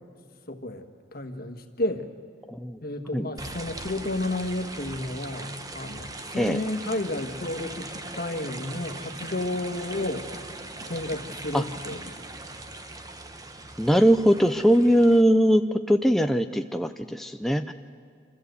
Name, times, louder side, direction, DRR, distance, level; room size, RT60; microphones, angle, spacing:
voice 1, 0.5-2.1 2.8-10.3 10.8-12.2, left 1 dB, 55° left, 5 dB, 1.4 m, -32 dB
voice 2, 2.5-2.8 3.1-3.3 6.4-6.6 11.5-11.6 13.8-17.7, equal, ahead, 6 dB, 0.4 m, -21 dB
sound 1, 3.4-15.2, right 2 dB, 20° right, 0.9 m, -40 dB
sound 2, 6.4-12.6, equal, 45° right, 1.8 m, -48 dB
26.0 x 13.5 x 8.1 m, 2.1 s
head